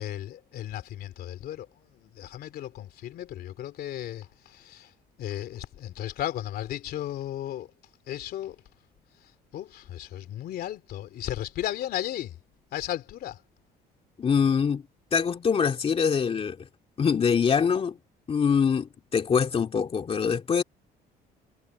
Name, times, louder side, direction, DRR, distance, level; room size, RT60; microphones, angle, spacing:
voice 1, 0.0-1.7 2.0-4.9 5.2-7.7 8.1-8.5 9.5-12.3 12.7-13.4, left 12 dB, 65° left, 2.9 m, -35 dB
voice 2, 14.2-14.8 15.1-16.7 17.0-18.0 18.3-20.6, left 6 dB, 35° left, 2.3 m, -24 dB
cardioid pair, 110°, 17 cm